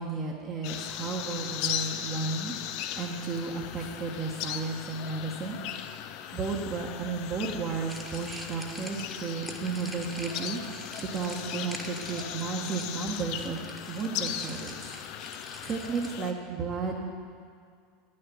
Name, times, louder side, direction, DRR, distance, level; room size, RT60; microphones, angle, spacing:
voice 1, 0.0-2.5 3.0-5.6 6.3-10.6 11.0-14.9 15.6-17.0, right 4 dB, 35° right, -4 dB, 1.4 m, -33 dB
sound 1, 0.6-16.3, left 10 dB, 50° left, 0.6 m, -38 dB
sound 2, 7.9-16.1, right 1 dB, 5° right, 1.4 m, -45 dB
10.0 x 6.5 x 8.9 m, 2.1 s
figure-of-eight pair, 80°, 0 cm